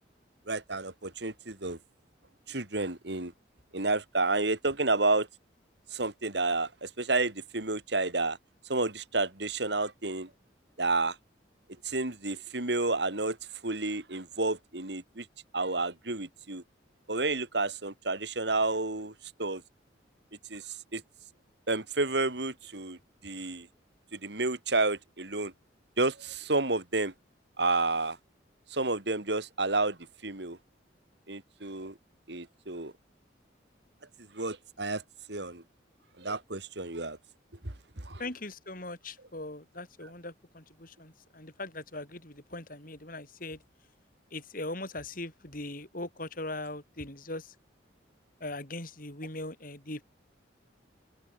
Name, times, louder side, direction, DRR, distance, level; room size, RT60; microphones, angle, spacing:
voice 1, 0.5-1.8 2.5-3.3 3.7-5.3 5.9-8.4 8.6-10.3 10.8-11.2 11.8-13.4 13.6-15.3 15.5-16.6 17.1-19.6 20.5-21.0 21.7-23.7 24.1-25.5 26.0-27.1 27.6-28.2 28.7-30.0 30.2-30.6 31.3-32.0 32.3-32.9 34.2-35.0 35.3-35.6 36.2-37.2 37.6-38.2, right 3 dB, 65° right, 2.6 m, -30 dB
voice 2, 38.2-43.6 44.3-47.5 48.4-50.0, left 2 dB, 50° left, 6.0 m, -40 dB
open air
head